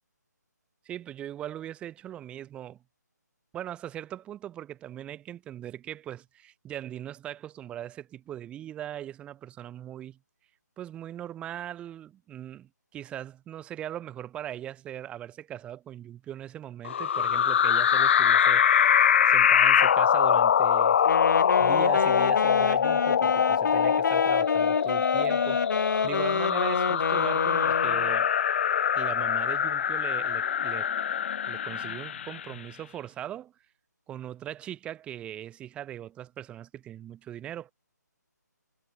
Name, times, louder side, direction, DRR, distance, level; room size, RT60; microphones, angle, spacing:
voice 1, 0.8-2.8 3.5-10.2 10.8-19.0 19.2-21.0 21.6-28.3 28.9-30.9 31.5-33.5 34.1-37.7, right 11 dB, 10° right, 4.7 m, -40 dB
sound 1, 16.8-32.5, left 8 dB, 40° left, 1.2 m, -23 dB
Wind instrument woodwind instrument, 21.0-28.2, left 4 dB, 80° left, 0.4 m, -29 dB
figure-of-eight pair, 150°, 10 cm